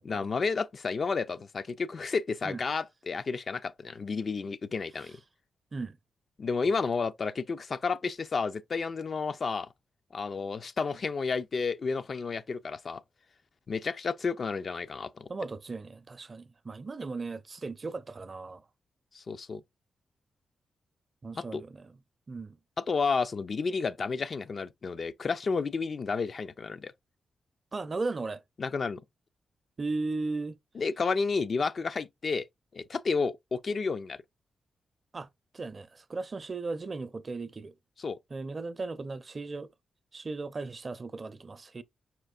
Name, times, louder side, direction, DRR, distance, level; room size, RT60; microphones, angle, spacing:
voice 1, 0.0-5.2 6.4-9.7 10.1-13.0 13.7-15.3 19.1-19.6 21.3-21.6 22.8-26.9 28.6-29.0 30.8-32.5 32.7-34.2 38.0-38.2, left 4 dB, 55° left, 0.3 m, -31 dB
voice 2, 15.3-18.6 21.2-21.9 22.3-22.6 27.7-28.4 29.8-30.6 35.1-35.3 35.5-37.7 38.3-39.7 40.1-41.8, right 3 dB, 40° right, 0.5 m, -36 dB
4.7 x 4.4 x 2.3 m
cardioid pair, 60°, 0 cm